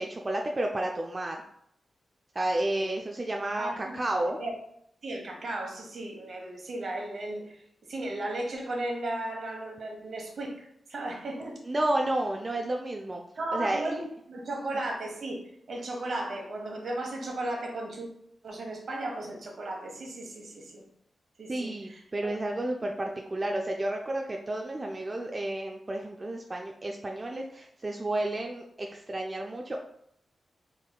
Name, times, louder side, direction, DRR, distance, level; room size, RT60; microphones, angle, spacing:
voice 1, 0.0-1.4 2.3-4.4 11.7-13.2 13.5-13.8 21.5-29.8, right 1 dB, 30° right, 1 dB, 0.3 m, -31 dB
voice 2, 3.6-4.0 4.4-4.5 5.0-7.6 7.9-11.6 13.4-15.4 15.7-18.1 18.4-20.8 21.4-22.4, right 1 dB, 60° right, 1 dB, 1.0 m, -35 dB
3.7 x 3.6 x 2.2 m, 0.73 s
wide cardioid pair, 100°, 0 cm